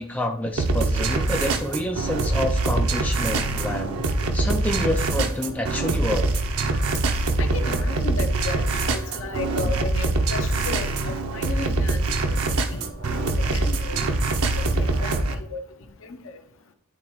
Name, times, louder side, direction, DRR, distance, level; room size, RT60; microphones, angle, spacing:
voice 1, 0.0-4.0 4.3-6.3, left 1 dB, 5° left, 2 dB, 0.4 m, -28 dB
sound 1, 0.6-15.3, right 2 dB, 90° right, 0.6 m, -24 dB
voice 2, 7.4-12.4 12.7-12.8 13.3-14.0 14.3-15.6 16.0-16.4, left 3 dB, 70° left, 7 dB, 0.7 m, -34 dB
10.5 x 3.6 x 3.0 m, 0.66 s
head